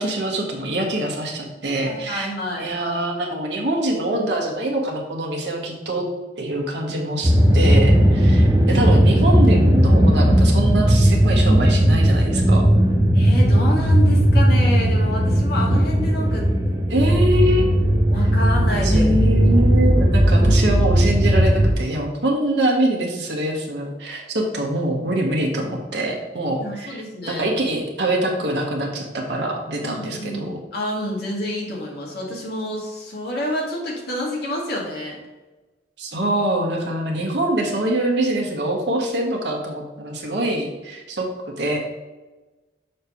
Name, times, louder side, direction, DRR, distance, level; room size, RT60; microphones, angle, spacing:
voice 1, 0.0-2.3 2.6-6.1 6.4-12.7 16.9-17.6 18.8-30.6 36.0-41.3 41.6-41.8, right 1 dB, 70° right, 0 dB, 1.3 m, -24 dB
voice 2, 1.8-2.7 13.1-16.8 18.1-19.1 26.6-27.4 29.8-35.2, left 1 dB, 60° left, -3 dB, 2.0 m, -28 dB
sound 1, 7.2-21.7, equal, 20° right, 0.8 m, -16 dB
6.6 x 3.3 x 5.7 m, 1.1 s
head